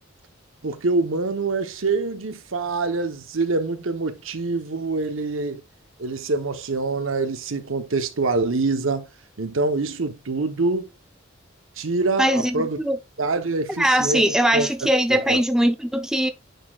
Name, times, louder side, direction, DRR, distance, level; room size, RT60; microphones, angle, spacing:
voice 1, 0.6-5.6 6.0-9.1 9.4-10.9 11.8-12.8 13.2-14.2 14.5-14.7 15.1-15.4, right 3 dB, 75° right, 0.9 m, -25 dB
voice 2, 12.2-13.0 13.8-16.3, right 1 dB, 5° right, 0.6 m, -21 dB
9.2 x 4.3 x 2.4 m
head